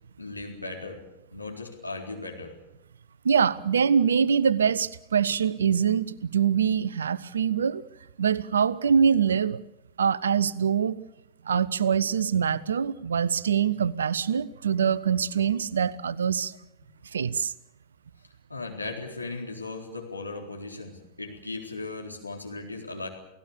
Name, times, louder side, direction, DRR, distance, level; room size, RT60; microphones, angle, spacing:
voice 1, 0.2-1.0 1.3-2.5 18.5-23.1, left 3 dB, 85° left, 0 dB, 4.2 m, -37 dB
voice 2, 3.2-7.8 8.2-9.6 10.0-11.0 11.4-16.6 17.1-17.5, right 7 dB, 70° right, 19 dB, 0.8 m, -24 dB
29.5 x 17.5 x 7.0 m, 0.93 s
figure-of-eight pair, 90°, 0 cm